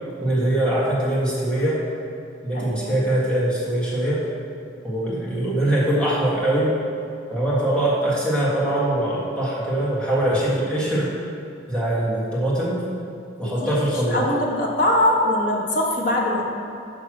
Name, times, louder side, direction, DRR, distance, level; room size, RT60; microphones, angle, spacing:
voice 1, 0.2-1.8 2.4-4.2 4.8-6.7 7.3-11.1 11.7-12.8 13.4-14.3, right 1 dB, 5° left, -8 dB, 1.5 m, -22 dB
voice 2, 2.5-2.9 13.4-16.5, left 1 dB, 40° left, -2 dB, 1.0 m, -22 dB
6.2 x 5.3 x 6.1 m, 2.4 s
head